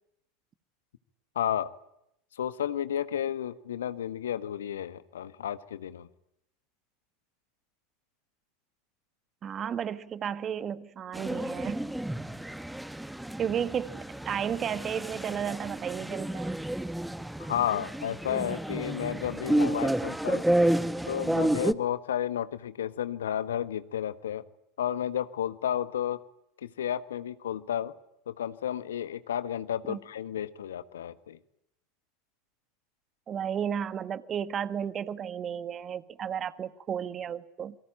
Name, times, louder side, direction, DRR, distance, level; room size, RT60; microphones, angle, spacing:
voice 1, 1.3-1.7 2.4-6.1 17.5-20.4 21.1-24.4 24.8-26.2 26.6-27.9 28.3-31.4, left 10 dB, 75° left, 1.4 m, -32 dB
voice 2, 9.4-11.9 13.4-16.5 29.8-30.0 33.3-37.8, right 8 dB, 35° right, 1.5 m, -33 dB
sound 1, 11.1-21.7, right 1 dB, 5° right, 1.2 m, -30 dB
27.5 x 23.0 x 8.9 m
hypercardioid pair, 80°, 0 cm